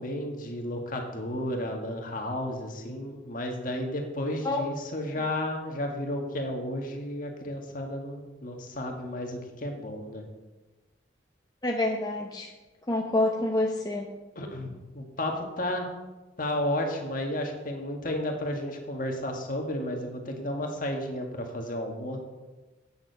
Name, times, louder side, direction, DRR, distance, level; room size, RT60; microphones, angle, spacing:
voice 1, 0.0-10.2 14.4-15.9 16.4-22.2, left 1 dB, 45° left, 2 dB, 1.7 m, -32 dB
voice 2, 11.6-12.5 12.9-14.1, left 2 dB, 20° left, 0 dB, 0.8 m, -27 dB
8.9 x 7.3 x 6.7 m, 1.2 s
head